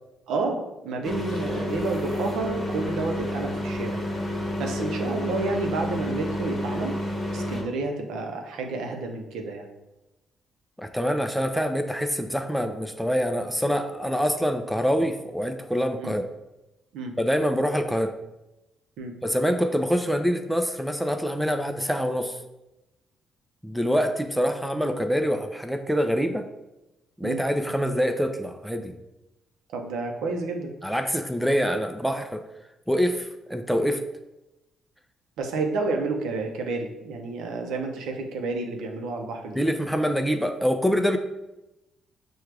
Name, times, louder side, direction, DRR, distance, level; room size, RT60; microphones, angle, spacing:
voice 1, 0.3-4.0 4.6-7.0 7.3-9.7 16.0-16.1 16.9-17.2 19.0-19.2 27.2-27.4 29.7-30.7 35.4-39.6, right 3 dB, 85° right, 3 dB, 0.6 m, -30 dB
sound 1, 1.0-7.6, left 1 dB, 20° left, 1.1 m, -30 dB
voice 2, 10.8-16.2 17.2-18.1 19.2-22.4 23.6-26.5 27.2-29.0 30.8-32.4 32.9-34.0 39.5-41.2, equal, ahead, 7 dB, 0.4 m, -25 dB
6.0 x 2.3 x 3.3 m, 0.96 s
cardioid pair, 90°, 0 cm